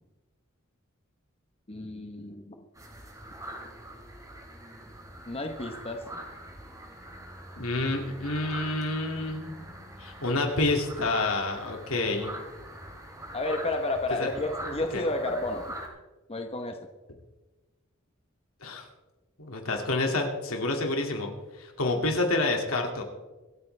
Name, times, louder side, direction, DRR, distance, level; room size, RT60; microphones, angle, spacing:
voice 1, 1.7-2.6 5.3-6.2 13.3-15.7 16.3-16.8, left 2 dB, 30° left, 5 dB, 1.0 m, -31 dB
sound 1, 2.8-15.9, right 1 dB, 15° right, 2.4 m, -43 dB
voice 2, 7.6-9.7 10.0-12.3 14.2-14.3 14.9-15.0 18.6-18.9 19.4-21.3 21.6-23.0, left 2 dB, 85° left, 3 dB, 2.3 m, -28 dB
25.0 x 8.8 x 3.3 m, 1.2 s
head